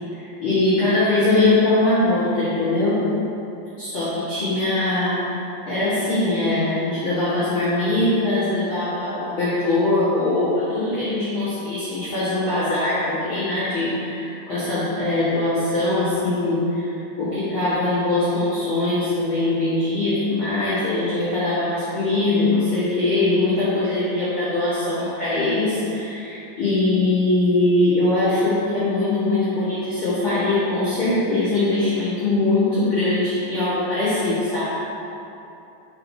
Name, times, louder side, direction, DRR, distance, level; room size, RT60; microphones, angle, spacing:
voice 1, 0.1-3.1 3.8-5.4 5.6-34.6, left 2 dB, 60° left, -14 dB, 1.4 m, -22 dB
4.8 x 4.7 x 4.1 m, 2.8 s
omnidirectional pair, 4.4 m